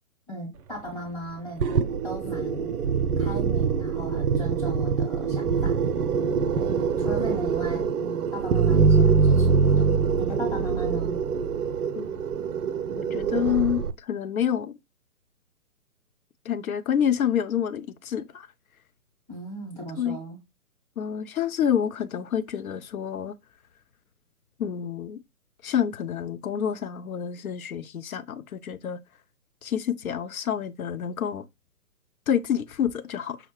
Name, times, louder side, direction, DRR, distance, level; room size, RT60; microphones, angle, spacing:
voice 1, 0.3-2.7 3.2-5.8 6.5-9.9 10.2-11.2 19.3-20.4, equal, 5° left, 0.8 m, -37 dB
sound 1, 1.6-13.9, right 6 dB, 75° right, 0.5 m, -24 dB
voice 2, 13.0-14.8 16.5-18.5 20.0-20.2 21.0-23.3 24.6-25.2 25.6-29.0 29.6-31.4 32.3-33.4, left 9 dB, 65° left, 0.6 m, -28 dB
5.7 x 2.1 x 3.0 m
figure-of-eight pair, 130°, 46 cm